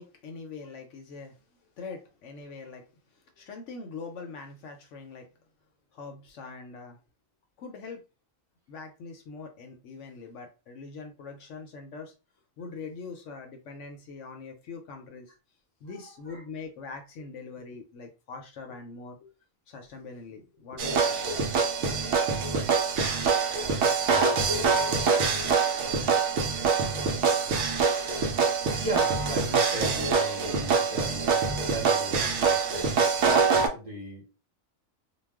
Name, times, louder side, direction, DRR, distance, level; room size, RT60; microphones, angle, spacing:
voice 1, 0.0-1.4 1.8-2.9 3.3-5.3 5.9-7.0 7.6-8.0 8.7-12.1 12.6-15.3 15.8-19.3 19.7-21.2 21.6-21.7, left 4 dB, 70° left, 0.9 m, -42 dB
voice 2, 15.9-16.4 25.9-27.1 28.8-33.0 33.7-34.2, right 1 dB, 30° right, 0.9 m, -37 dB
sound 1, 20.8-33.7, right 5 dB, 70° right, 0.9 m, -25 dB
2.3 x 2.2 x 3.4 m
omnidirectional pair, 1.4 m